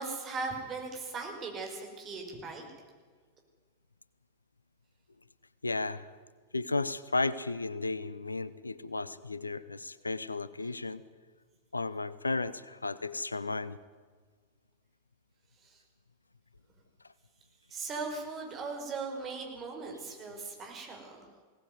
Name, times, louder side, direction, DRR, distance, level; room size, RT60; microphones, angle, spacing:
voice 1, 0.0-2.6 15.6-15.8 17.7-21.3, right 4 dB, 25° right, 2 dB, 5.7 m, -39 dB
voice 2, 5.6-6.1 6.5-11.0 11.7-13.8, left 3 dB, 80° left, 17 dB, 0.7 m, -34 dB
21.5 x 18.0 x 9.5 m, 1.5 s
figure-of-eight pair, 90°, 0 cm